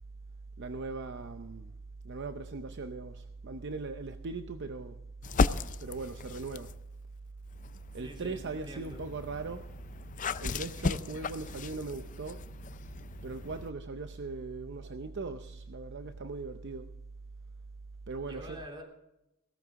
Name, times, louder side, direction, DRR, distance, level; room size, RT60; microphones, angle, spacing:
voice 1, 0.6-1.7 2.0-5.0 5.8-6.7 7.9-9.7 10.4-12.4 13.2-16.9 18.1-18.6, right 3 dB, 60° right, 8 dB, 0.7 m, -39 dB
sound 1, 5.2-6.8 7.5-13.7, left 4 dB, 40° left, 0.5 m, -35 dB
voice 2, 8.0-9.0 18.2-18.8, right 1 dB, 25° right, 1 dB, 3.3 m, -46 dB
17.0 x 13.0 x 3.7 m, 0.87 s
head